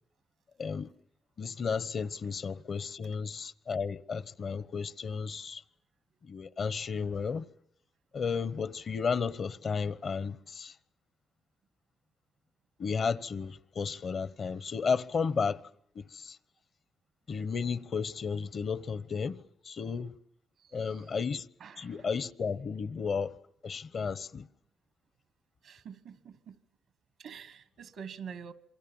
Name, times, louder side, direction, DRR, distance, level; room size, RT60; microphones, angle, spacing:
voice 1, 0.6-0.9 1.4-5.6 6.2-7.5 8.1-10.7 12.8-15.6 15.9-16.4 17.3-20.1 20.7-21.5 21.8-23.3 23.6-24.5, left 5 dB, 60° left, 1.1 m, -33 dB
voice 2, 20.6-21.1 21.6-21.9 25.6-26.6 27.2-28.5, right 7 dB, 85° right, 1.5 m, -46 dB
27.5 x 23.0 x 7.3 m
cardioid pair, 65°, 0 cm